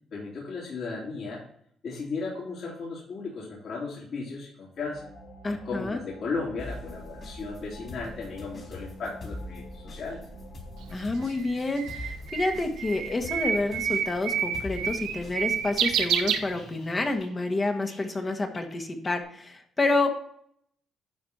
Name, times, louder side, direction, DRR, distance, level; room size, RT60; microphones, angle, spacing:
voice 1, 0.1-1.4 1.8-5.1 5.5-10.2, left 4 dB, 65° left, -6 dB, 3.8 m, -35 dB
sound 1, 4.8-11.0, right 1 dB, 85° left, 2.9 m, -48 dB
voice 2, 5.4-6.0 10.9-20.2, left 2 dB, 30° left, 4 dB, 1.5 m, -29 dB
sound 2, 6.6-18.2 18.5-19.2, left 1 dB, 45° left, 3.5 m, -44 dB
Bird, 10.8-17.1, right 8 dB, 90° right, 0.9 m, -29 dB
12.0 x 4.4 x 4.2 m, 0.67 s
cardioid pair, 90°, 0 cm